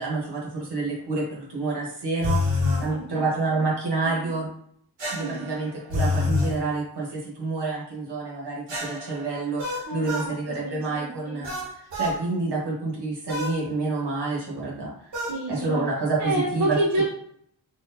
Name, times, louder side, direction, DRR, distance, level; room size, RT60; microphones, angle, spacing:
voice 1, 0.0-4.5 5.1-15.1 15.5-16.8, right 3 dB, 65° right, -3 dB, 1.5 m, -28 dB
sound 1, 2.2-2.9 5.0-6.6 8.7-10.3 11.4-12.2 13.3-13.6 15.1-15.4, left 2 dB, 85° right, 1.5 m, -27 dB
voice 2, 2.6-3.6 4.0-4.3 5.1-5.5 9.9-10.3 10.6-11.4 15.3-15.9 16.2-17.1, right 1 dB, 40° right, -4 dB, 0.9 m, -29 dB
4.4 x 2.9 x 2.6 m, 0.67 s
wide cardioid pair, 95°, 44 cm